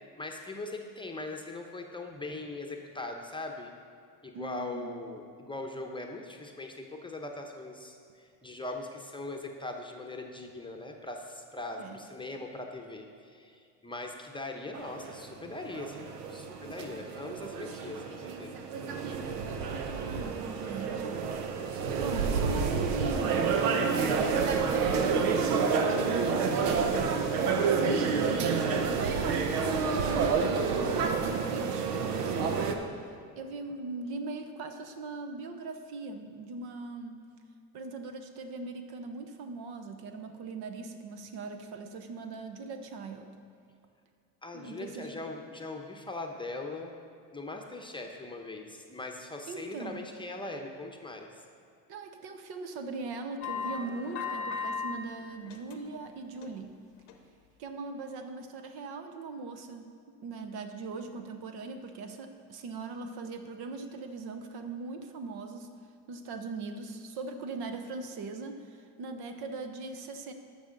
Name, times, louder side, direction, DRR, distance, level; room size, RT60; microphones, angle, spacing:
voice 1, 0.2-3.7 4.2-18.5 44.4-46.9 47.3-51.3, left 2 dB, 10° left, 2 dB, 0.8 m, -40 dB
voice 2, 4.3-5.0 11.8-12.0 19.9-21.3 22.0-23.6 24.0-27.0 27.4-29.4 30.1-32.8 33.3-37.2 37.7-43.3 44.5-45.2 49.5-50.0 51.9-56.7 57.6-59.9 60.2-65.7 66.1-70.3, right 3 dB, 55° right, 7 dB, 0.9 m, -40 dB
sound 1, 14.7-32.7, right 5 dB, 85° right, 0.9 m, -29 dB
sound 2, 53.4-55.0 55.3-56.0 56.4-56.6 57.1-57.2, left 6 dB, 90° left, 0.9 m, -36 dB
13.0 x 5.6 x 3.9 m, 2.3 s
supercardioid pair, 85°, 45 cm